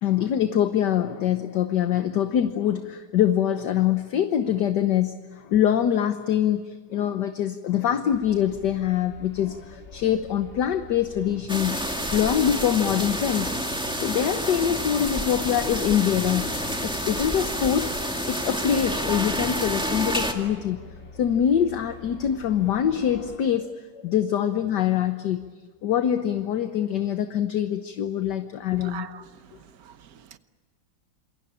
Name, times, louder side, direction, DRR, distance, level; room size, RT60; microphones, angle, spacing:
voice 1, 0.0-11.8 12.1-16.4 16.8-17.9 18.3-20.8 21.2-23.7 24.0-25.4 25.8-29.1, left 10 dB, 60° left, 1.5 m, -24 dB
sound 1, 8.1-23.4, left 3 dB, 35° left, 3.0 m, -47 dB
sound 2, 11.5-20.3, equal, ahead, 2.0 m, -29 dB
voice 2, 28.8-30.4, right 9 dB, 55° right, 1.3 m, -43 dB
27.5 x 23.0 x 8.7 m
omnidirectional pair, 2.2 m